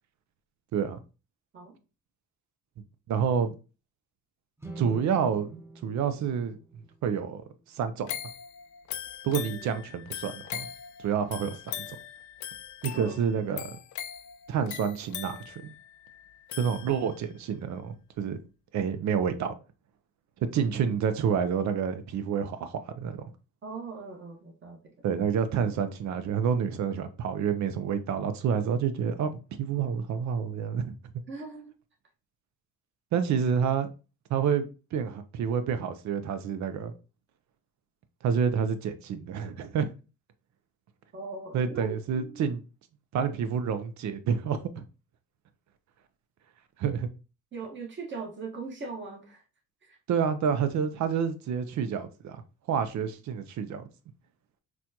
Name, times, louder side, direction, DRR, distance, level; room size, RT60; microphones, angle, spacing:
voice 1, 3.1-3.6 4.8-6.6 7.0-7.4 7.7-8.1 9.2-10.7 11.0-11.6 11.9-12.0 12.8-13.6 14.5-15.7 16.6-18.4 18.7-19.5 20.5-23.2 25.0-31.0 33.1-33.9 34.3-36.9 38.2-39.9 41.5-42.6 43.1-44.8 46.8-47.1 50.1-52.4 52.7-53.8, right 7 dB, 70° right, 0.6 m, -28 dB
sound 1, 4.6-7.9, right 1 dB, 10° right, 0.7 m, -47 dB
sound 2, 8.1-17.3 17.8-17.9, left 11 dB, 70° left, 0.5 m, -41 dB
voice 2, 12.9-13.5 23.6-24.9 31.3-31.7 41.1-42.5 47.5-49.4 49.9-50.0, right 4 dB, 40° right, 1.3 m, -40 dB
4.2 x 2.3 x 2.7 m
cardioid pair, 90°, 30 cm